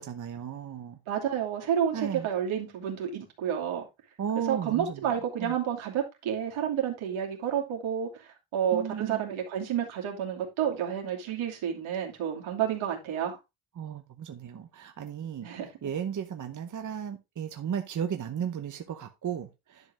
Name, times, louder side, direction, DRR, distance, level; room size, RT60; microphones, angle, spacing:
voice 1, 0.0-1.0 1.9-2.3 4.2-5.1 5.4-5.5 8.7-9.3 13.8-15.5 15.8-19.9, right 8 dB, 40° right, 0.9 m, -35 dB
voice 2, 1.1-3.8 4.5-8.1 8.5-13.4 15.4-15.9, right 9 dB, 75° right, 2.9 m, -30 dB
10.5 x 5.2 x 3.5 m
cardioid pair, 110°, 48 cm